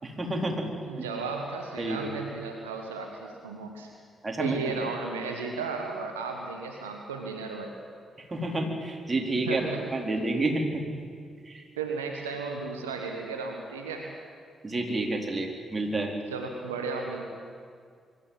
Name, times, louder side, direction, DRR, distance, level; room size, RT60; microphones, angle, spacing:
voice 1, 0.0-0.7 1.8-2.1 4.2-4.8 8.2-10.8 11.5-11.6 14.6-16.1, right 2 dB, 30° right, 2 dB, 4.0 m, -29 dB
voice 2, 0.9-3.9 4.4-7.7 9.3-9.9 11.8-14.2 16.3-17.2, right 4 dB, 85° right, 2 dB, 1.4 m, -34 dB
23.5 x 13.0 x 9.2 m, 2.1 s
hypercardioid pair, 40°, 0 cm